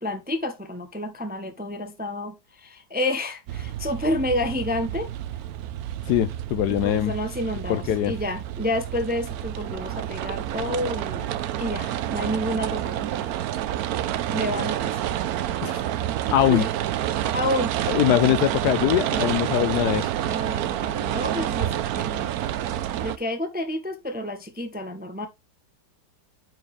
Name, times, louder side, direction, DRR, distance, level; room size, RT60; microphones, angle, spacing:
voice 1, 0.0-5.1 6.7-13.3 14.3-15.0 16.5-16.7 17.3-17.7 20.2-22.3 23.0-25.3, left 1 dB, 10° right, 0.6 m, -30 dB
sound 1, 3.5-23.2, right 12 dB, 70° right, 0.9 m, -28 dB
voice 2, 6.1-7.1 7.7-8.1 15.6-15.8 16.3-16.6 17.9-20.1, left 12 dB, 70° left, 1.0 m, -22 dB
9.2 x 4.9 x 3.2 m
omnidirectional pair, 2.0 m